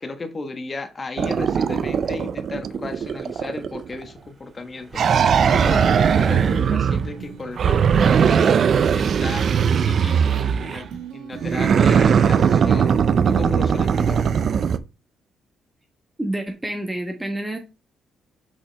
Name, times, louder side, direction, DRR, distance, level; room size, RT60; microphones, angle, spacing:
voice 1, 0.0-12.9 13.2-14.3, left 3 dB, 30° left, 8 dB, 1.3 m, -35 dB
sound 1, 1.2-4.0 4.9-7.2 7.6-10.9 11.4-14.8, right 7 dB, 55° right, 0.5 m, -19 dB
sound 2, 4.0-9.2 13.1-13.2 13.8-13.9, right 4 dB, 35° right, 2.5 m, -35 dB
sound 3, 5.3-13.4, right 5 dB, 85° right, 1.3 m, -40 dB
voice 2, 16.2-17.6, right 1 dB, 10° right, 3 dB, 1.2 m, -28 dB
6.6 x 5.5 x 3.4 m, 0.29 s
cardioid pair, 90°, 0 cm